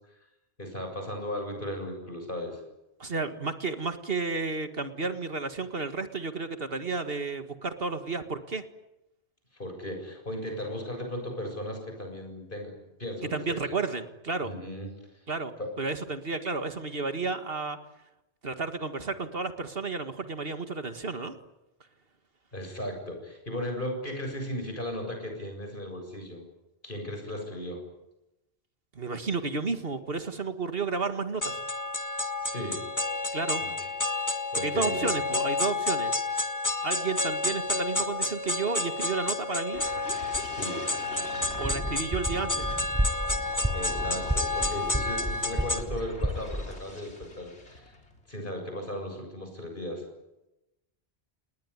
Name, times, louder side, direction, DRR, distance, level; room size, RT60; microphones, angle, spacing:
voice 1, 0.6-2.6 9.5-13.6 14.4-14.9 15.6-15.7 22.5-26.5 26.8-27.8 32.4-32.9 33.6-33.9 34.5-35.1 40.5-40.9 43.7-47.9 48.3-50.0, left 1 dB, 50° left, 3 dB, 7.6 m, -36 dB
voice 2, 3.0-8.6 13.3-14.5 15.3-17.8 18.4-21.3 29.0-31.6 33.3-33.6 34.6-36.1 36.8-39.8 41.6-42.7, right 4 dB, 60° right, 8 dB, 2.0 m, -32 dB
sound 1, 31.4-45.8, left 2 dB, 15° left, 1.8 m, -30 dB
sound 2, 39.7-48.2 48.6-48.9, left 2 dB, 85° left, 3.9 m, -43 dB
sound 3, 41.5-46.8, equal, 10° right, 1.3 m, -32 dB
29.5 x 19.5 x 9.8 m, 0.94 s
omnidirectional pair, 1.1 m